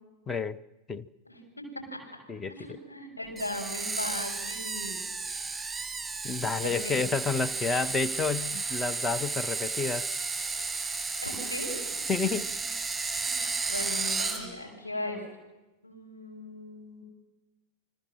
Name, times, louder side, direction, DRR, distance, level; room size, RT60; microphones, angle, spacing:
voice 1, 0.3-0.6 0.9-1.1 2.3-2.8 6.2-10.1 12.1-12.5, left 4 dB, 15° left, 0.8 m, -30 dB
voice 2, 1.2-1.6 1.9-2.0 2.5-5.0 6.6-7.0 11.2-11.7 12.2-12.6 13.2-13.3 13.7-15.3 15.8-17.0, left 1 dB, 85° left, 6.6 m, -38 dB
Screech, 3.4-14.4, right 4 dB, 10° right, 4.7 m, -33 dB
29.0 x 21.0 x 7.6 m
figure-of-eight pair, 90°, 0 cm